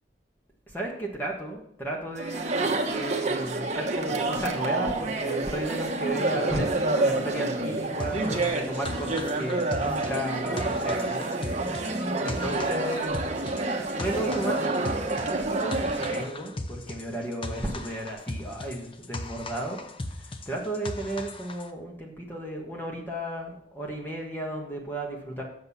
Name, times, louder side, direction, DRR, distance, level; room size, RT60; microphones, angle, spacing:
voice 1, 0.7-11.3 12.2-13.2 13.8-19.8 20.5-25.4, right 1 dB, 10° left, -1 dB, 1.6 m, -34 dB
Chatter, 2.2-16.3, right 2 dB, 40° right, 1.1 m, -28 dB
sound 1, 8.0-21.7, left 2 dB, 30° left, 0.7 m, -38 dB
7.9 x 6.8 x 5.7 m, 0.70 s
head